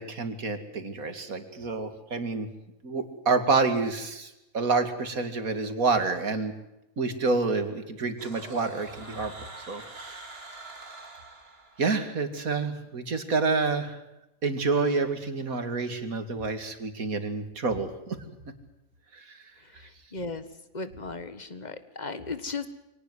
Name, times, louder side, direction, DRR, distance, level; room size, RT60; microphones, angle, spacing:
voice 1, 0.0-2.5 2.8-6.5 7.0-9.3 9.7-10.3 11.8-14.0 14.4-18.2 19.1-19.4, right 4 dB, 90° right, 8 dB, 2.8 m, -28 dB
sound 1, 8.2-12.2, right 3 dB, 45° right, 2.7 m, -45 dB
voice 2, 19.6-20.5 20.7-22.7, left 4 dB, 30° left, 12 dB, 1.7 m, -36 dB
24.0 x 18.5 x 7.9 m, 0.90 s
omnidirectional pair, 1.4 m